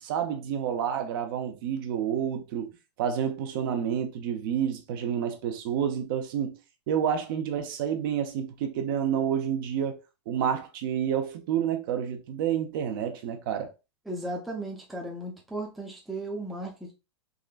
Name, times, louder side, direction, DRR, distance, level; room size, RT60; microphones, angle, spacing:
voice 1, 0.0-2.7 3.0-6.6 6.9-10.0 10.3-13.7, right 8 dB, 45° right, 0.6 m, -29 dB
voice 2, 14.1-16.9, right 1 dB, ahead, 0.5 m, -35 dB
3.7 x 2.1 x 2.4 m
hypercardioid pair, 145°, 15 cm